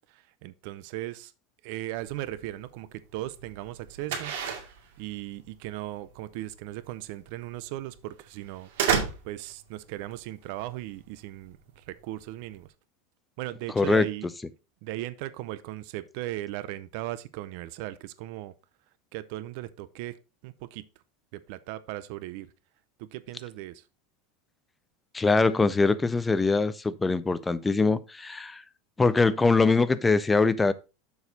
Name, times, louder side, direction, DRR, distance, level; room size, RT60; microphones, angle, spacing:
voice 1, 0.1-1.3 1.6-4.3 5.0-8.7 9.2-12.7 13.4-14.3 14.8-18.5 19.1-20.9 21.3-22.5 23.0-23.9, right 15 dB, 50° right, 0.6 m, -37 dB
sound 1, 2.0-12.6, right 7 dB, 80° right, 2.1 m, -35 dB
voice 2, 13.8-14.1 25.1-28.6 29.0-30.7, left 3 dB, 10° left, 0.4 m, -23 dB
7.1 x 6.3 x 4.0 m
supercardioid pair, 180°, 0 cm